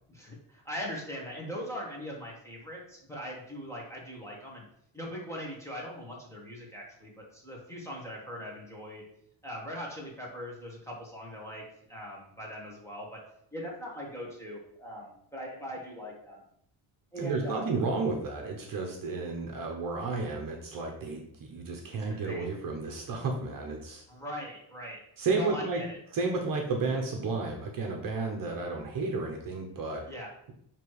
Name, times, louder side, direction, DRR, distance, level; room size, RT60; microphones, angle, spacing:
voice 1, 0.1-4.6 4.9-9.0 9.4-11.6 11.9-13.2 13.5-16.4 17.1-17.7 22.2-22.5 24.1-25.0 25.3-26.0 30.1-30.3, equal, 5° left, -3 dB, 1.4 m, -40 dB
voice 2, 17.2-24.0 25.2-25.8 26.1-30.0, right 3 dB, 45° right, 2 dB, 1.0 m, -32 dB
6.7 x 3.0 x 4.7 m, 0.72 s
cardioid pair, 150°, 46 cm